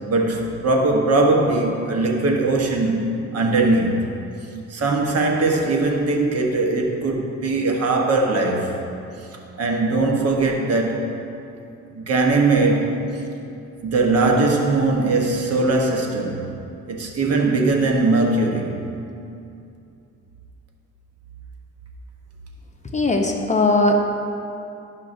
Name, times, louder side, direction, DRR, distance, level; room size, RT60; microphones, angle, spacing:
voice 1, 0.1-4.2 4.7-8.8 9.2-9.3 9.6-11.1 11.9-13.2 13.8-16.4 16.9-18.7, right 2 dB, 55° right, 1 dB, 1.1 m, -20 dB
voice 2, 22.9-24.0, left 2 dB, 25° left, 2 dB, 0.8 m, -18 dB
12.0 x 5.7 x 2.6 m, 2.6 s
cardioid pair, 90°, 30 cm